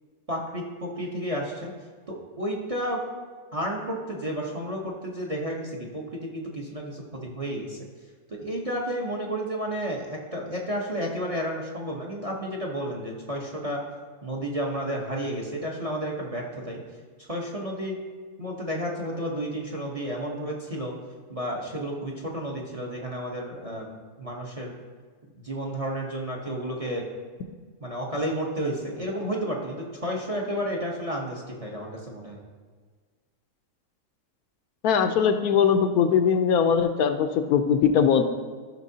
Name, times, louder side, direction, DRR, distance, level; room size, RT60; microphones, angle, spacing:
voice 1, 0.3-1.7 2.1-3.0 3.5-7.8 8.3-13.8 14.2-16.8 17.2-18.0 18.4-20.9 21.3-24.7 25.3-27.0 27.8-32.4, equal, 30° right, -1 dB, 0.8 m, -31 dB
voice 2, 34.8-38.2, left 7 dB, 75° left, 7 dB, 1.1 m, -21 dB
13.5 x 5.9 x 2.7 m, 1.5 s
omnidirectional pair, 1.6 m